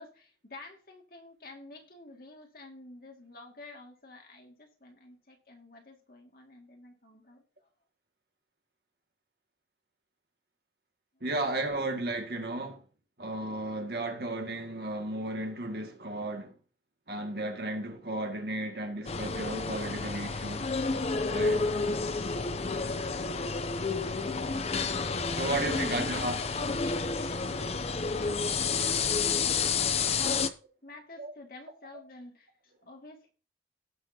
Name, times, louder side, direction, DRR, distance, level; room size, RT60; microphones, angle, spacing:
voice 1, 0.0-7.4 22.6-23.0 25.7-27.7 28.2-30.5 30.8-32.5 32.9-33.3, left 2 dB, 50° left, 2.3 m, -49 dB
voice 2, 11.2-12.8 13.2-16.6 17.1-20.7 21.3-21.7 25.4-26.4 31.2-31.3, right 2 dB, 60° right, 2.0 m, -34 dB
sound 1, 19.1-30.5, left 4 dB, 35° left, 0.6 m, -30 dB
17.5 x 6.5 x 2.8 m
head